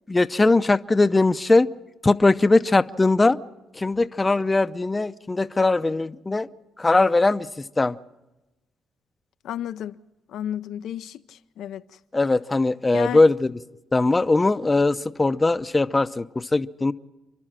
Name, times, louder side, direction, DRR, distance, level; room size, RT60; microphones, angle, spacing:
voice 1, 0.1-1.7 2.0-3.4 3.8-6.5 6.8-7.9 12.1-13.5 13.9-16.9, left 3 dB, 20° left, 0.7 m, -20 dB
voice 2, 9.4-10.0 10.3-11.8 12.9-13.2, left 10 dB, 80° left, 0.6 m, -32 dB
29.5 x 12.0 x 7.4 m
cardioid pair, 90°, 0 cm